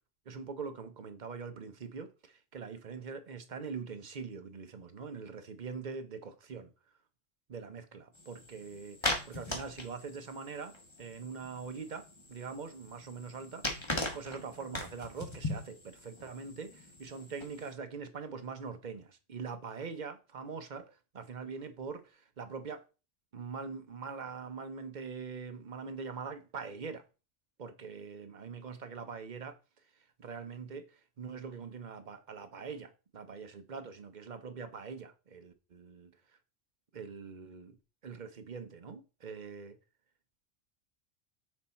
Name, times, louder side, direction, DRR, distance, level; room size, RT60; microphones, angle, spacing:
voice 1, 0.3-6.7 7.5-9.0 9.2-13.7 14.1-22.8 23.3-27.0 27.6-29.6 30.2-36.1 36.9-37.8 38.0-39.8, right 5 dB, 45° right, 0.8 m, -43 dB
sound 1, 8.1-17.7, left 2 dB, 25° left, 1.3 m, -40 dB
6.2 x 4.4 x 4.2 m
omnidirectional pair, 1.3 m